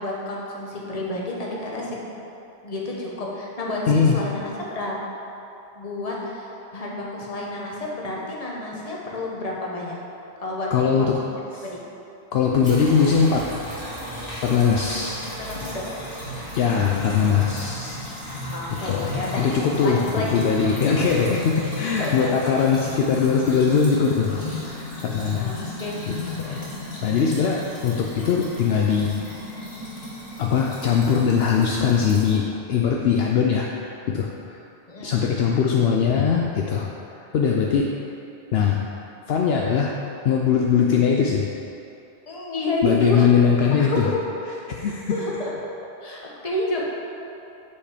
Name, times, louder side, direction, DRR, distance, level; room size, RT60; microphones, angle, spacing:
voice 1, 0.0-2.1 2.6-5.0 5.7-10.0 10.4-10.7 11.0-11.3 11.6-11.8 15.4-15.8 16.6-17.2 18.5-19.5 19.8-20.4 20.8-21.2 22.0-22.3 25.3-26.0 26.4-26.8 34.9-35.3 42.3-43.3 43.7-44.2 45.1-45.5 46.0-46.8, left 2 dB, 35° left, -3 dB, 1.1 m, -30 dB
voice 2, 3.9-4.2 10.7-11.2 11.5-11.6 12.3-13.5 14.4-15.5 16.5-18.1 18.7-24.4 24.7-25.6 26.4-26.6 27.0-29.2 30.4-34.6 35.0-36.9 37.3-37.9 38.5-38.8 39.3-40.0 40.2-41.5 42.8-44.1 44.7-45.1, left 6 dB, 70° left, -1 dB, 0.8 m, -21 dB
sound 1, 12.6-32.4, left 1 dB, 50° left, 2.1 m, -34 dB
6.4 x 5.6 x 4.9 m, 2.8 s
omnidirectional pair, 1.1 m